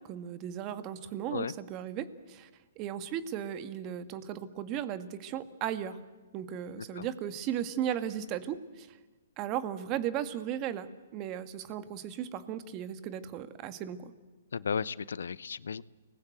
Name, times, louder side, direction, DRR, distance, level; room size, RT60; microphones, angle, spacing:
voice 1, 0.1-2.5 2.8-6.0 6.3-9.0 9.4-14.1, right 10 dB, 30° right, 12 dB, 1.7 m, -36 dB
voice 2, 14.5-15.8, left 6 dB, 80° left, 20 dB, 0.8 m, -34 dB
29.5 x 20.0 x 8.0 m, 1.3 s
hypercardioid pair, 140°, 0 cm